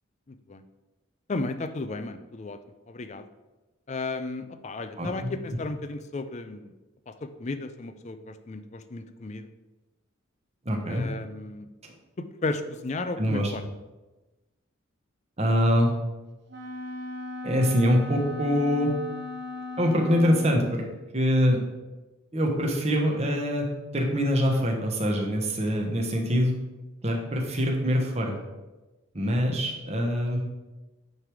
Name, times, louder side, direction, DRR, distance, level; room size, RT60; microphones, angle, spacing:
voice 1, 0.3-0.6 1.3-2.6 2.9-3.2 3.9-6.7 7.1-9.5 10.9-11.7 12.2-13.6, left 3 dB, 35° left, 10 dB, 0.4 m, -34 dB
voice 2, 10.6-11.0 11.8-11.9 13.2-13.5 15.4-15.9 17.4-18.9 19.8-20.8 21.1-21.6 22.3-23.7 23.9-26.5 27.0-28.4 29.1-30.4, equal, 30° right, 1 dB, 1.1 m, -24 dB
Wind instrument woodwind instrument, 16.5-20.8, left 3 dB, 55° right, 0.8 m, -37 dB
9.3 x 3.4 x 4.7 m, 1.1 s
head